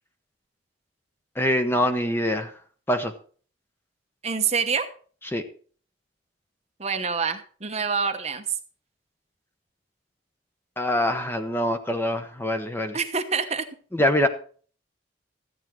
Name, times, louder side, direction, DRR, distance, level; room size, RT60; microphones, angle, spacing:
voice 1, 1.4-2.5 2.9-3.1 5.3-5.4 10.8-13.0 13.9-14.3, left 1 dB, 10° left, 8 dB, 0.9 m, -24 dB
voice 2, 4.2-4.9 6.8-8.4 12.9-13.7, right 5 dB, 35° right, 7 dB, 1.0 m, -26 dB
13.5 x 9.1 x 4.6 m, 0.43 s
head